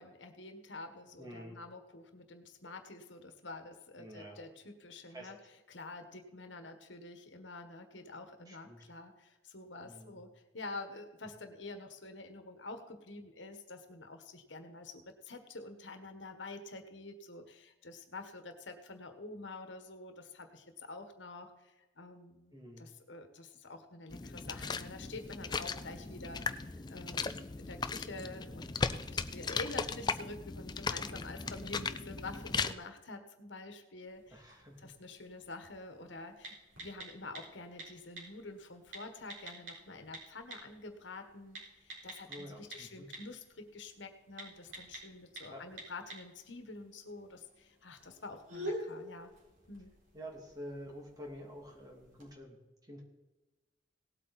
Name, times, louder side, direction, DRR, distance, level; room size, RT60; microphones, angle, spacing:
voice 1, 0.0-5.4 5.7-10.3 10.5-34.4 34.8-36.5 36.8-49.3 49.7-49.9, left 3 dB, 75° left, 7 dB, 1.5 m, -48 dB
voice 2, 1.2-1.6 4.0-4.4 5.1-5.3 8.5-8.9 9.8-10.2 22.5-22.9 34.3-34.9 42.3-43.1 45.5-45.6 50.1-52.6 52.9-53.0, equal, 20° right, -1 dB, 2.7 m, -48 dB
sound 1, 24.1-32.7, left 4 dB, 20° left, 0.4 m, -37 dB
sound 2, 34.1-52.3, right 1 dB, 90° right, 4.5 m, -49 dB
18.0 x 8.5 x 4.2 m, 1.1 s
head